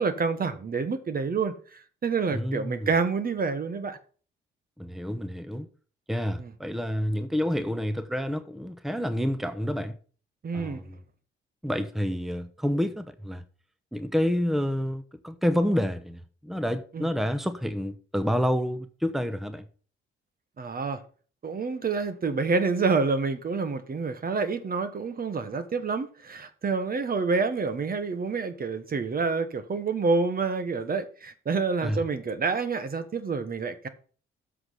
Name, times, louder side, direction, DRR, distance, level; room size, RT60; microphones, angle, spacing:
voice 1, 0.0-4.0 6.4-6.5 10.4-10.8 16.9-17.1 20.6-21.0 21.4-33.9, right 4 dB, 45° right, 1.3 m, -28 dB
voice 2, 2.3-2.9 4.8-5.7 6.1-10.0 10.5-11.0 11.6-13.4 13.9-19.7 31.8-32.0, equal, ahead, 0.9 m, -28 dB
7.9 x 6.2 x 5.7 m
cardioid pair, 70°, 21 cm